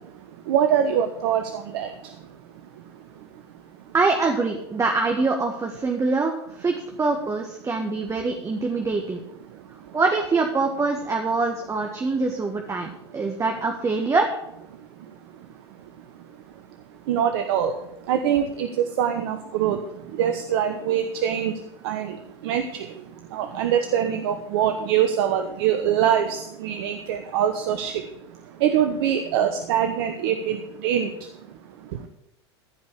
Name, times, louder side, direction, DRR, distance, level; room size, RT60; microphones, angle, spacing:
voice 1, 0.0-3.9 7.6-7.7 8.7-8.8 9.5-10.0 12.8-13.3 14.7-32.1, right 9 dB, 65° right, 1.1 m, -26 dB
voice 2, 3.9-9.2 9.9-14.4, right 3 dB, 20° right, 1.6 m, -24 dB
15.0 x 5.3 x 8.4 m
hypercardioid pair, 90°, 14 cm